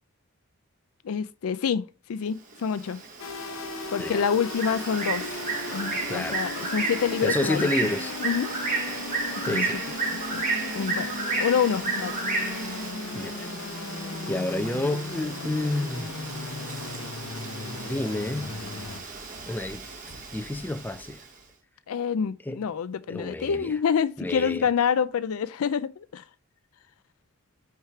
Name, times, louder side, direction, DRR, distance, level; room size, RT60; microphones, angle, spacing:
voice 1, 1.0-1.8 2.1-3.0 3.9-5.3 5.7-7.9 8.2-8.5 9.5-9.7 10.1-12.2 14.1-14.2 21.9-26.2, left 7 dB, 80° left, 0.4 m, -27 dB
Bird, 2.5-21.3, right 3 dB, 40° right, 1.1 m, -33 dB
sound 1, 3.2-19.0, left 3 dB, 65° left, 0.8 m, -37 dB
voice 2, 7.2-8.1 9.4-9.8 13.1-13.5 14.3-16.1 17.7-18.5 19.5-19.9 20.3-21.2 22.5-22.6 23.1-23.8 24.2-24.7, left 1 dB, 10° left, 0.4 m, -29 dB
4.8 x 4.6 x 5.7 m
head